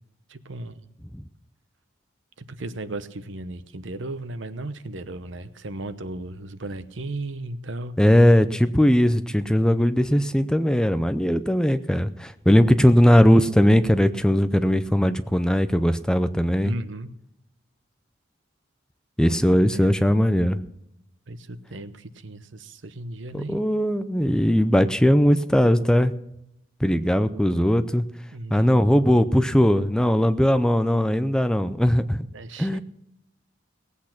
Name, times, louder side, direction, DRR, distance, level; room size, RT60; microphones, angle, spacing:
voice 1, 0.3-0.9 2.6-8.0 16.6-17.1 19.7-19.9 21.3-23.6 28.3-28.7 32.3-32.8, right 2 dB, 70° right, 12 dB, 0.9 m, -35 dB
voice 2, 8.0-16.7 19.2-20.6 23.3-26.1 26.8-28.1 28.5-32.2 32.6-32.8, equal, 5° left, 11 dB, 0.4 m, -19 dB
18.5 x 8.4 x 5.9 m, 0.81 s
head